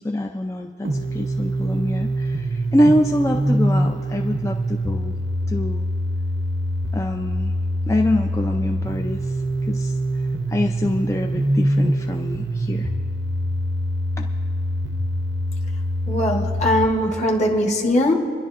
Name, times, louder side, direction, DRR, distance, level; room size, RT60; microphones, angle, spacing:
voice 1, 0.0-5.1 5.5-5.9 6.9-7.5 7.9-9.4 9.6-12.9 14.2-14.3, left 1 dB, 15° left, 3 dB, 0.4 m, -24 dB
sound 1, 0.8-16.9, equal, 75° right, 0.8 m, -24 dB
voice 2, 16.1-18.1, left 1 dB, 40° left, 0 dB, 1.2 m, -20 dB
28.0 x 11.0 x 2.5 m, 2.2 s
head